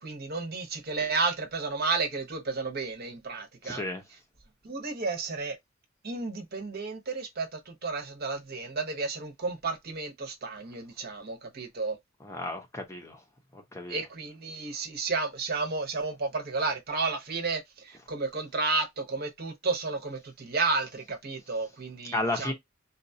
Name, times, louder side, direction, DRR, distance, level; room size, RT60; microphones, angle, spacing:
voice 1, 0.0-3.8 4.6-5.6 6.0-12.0 13.9-22.5, right 3 dB, 50° right, 0.8 m, -32 dB
voice 2, 3.6-4.0 12.2-13.2 13.5-14.0 22.1-22.5, left 2 dB, 15° left, 0.6 m, -33 dB
4.0 x 2.3 x 2.6 m
head